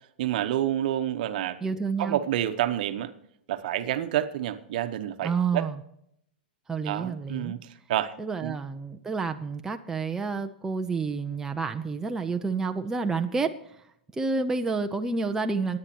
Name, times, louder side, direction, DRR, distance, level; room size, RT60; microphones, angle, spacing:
voice 1, 0.2-1.6 2.0-3.1 3.5-5.6 6.8-8.1 8.4-8.6, right 12 dB, 60° right, 1.0 m, -28 dB
voice 2, 1.6-2.2 5.2-5.8 6.7-7.5 8.2-13.8 14.1-15.8, right 4 dB, 10° right, 0.7 m, -29 dB
23.0 x 9.6 x 3.0 m
hypercardioid pair, 125°, 5 cm